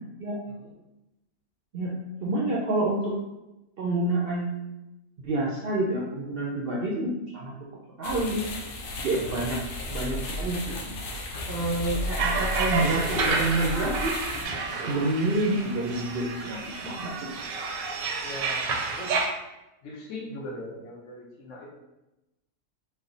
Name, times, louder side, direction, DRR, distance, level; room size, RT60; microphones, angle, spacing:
voice 1, 1.7-3.1 3.8-4.7 5.2-7.5 8.0-8.4 9.0-9.6 9.9-10.6 11.5-14.2 14.8-17.3, right 2 dB, 65° right, -3 dB, 0.6 m, -28 dB
sound 1, 8.0-14.4, left 2 dB, 85° left, 1.2 m, -36 dB
sound 2, 9.8-14.9, equal, 20° left, 0.6 m, -35 dB
sound 3, 12.2-19.3, right 4 dB, 80° right, 1.0 m, -30 dB
voice 2, 18.2-19.2 19.8-21.7, left 1 dB, 65° left, -2 dB, 1.1 m, -40 dB
3.2 x 2.1 x 3.8 m, 0.96 s
omnidirectional pair, 1.4 m